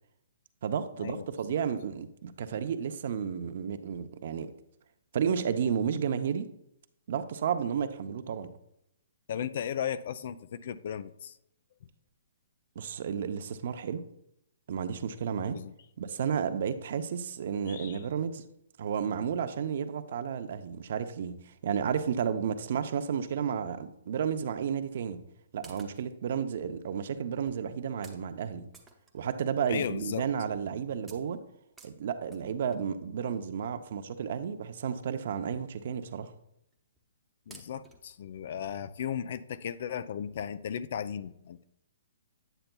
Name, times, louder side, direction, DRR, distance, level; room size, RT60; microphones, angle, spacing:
voice 1, 0.6-4.5 5.1-6.5 7.1-8.5 12.8-14.0 14.7-15.6 16.0-18.4 18.8-25.2 25.5-28.7 29.1-31.4 31.8-36.3, right 7 dB, 55° right, 10 dB, 0.5 m, -32 dB
voice 2, 9.3-11.3 15.5-15.7 17.7-18.0 29.7-30.2 37.5-41.6, left 8 dB, 55° left, 15 dB, 0.4 m, -36 dB
sound 1, 25.6-26.2 26.9-27.0 27.5-27.7 28.0-28.3 28.7-29.6 30.0-30.1 30.5-30.7 31.1-32.9 33.9-34.0 34.6-34.7 35.0-35.2 35.5-35.6 35.9-36.0 36.7-37.1 37.5-38.2 38.7-38.8 39.1-39.2, right 3 dB, 5° right, 0.7 m, -55 dB
8.9 x 6.8 x 2.2 m, 0.77 s
hypercardioid pair, 155°, 0 cm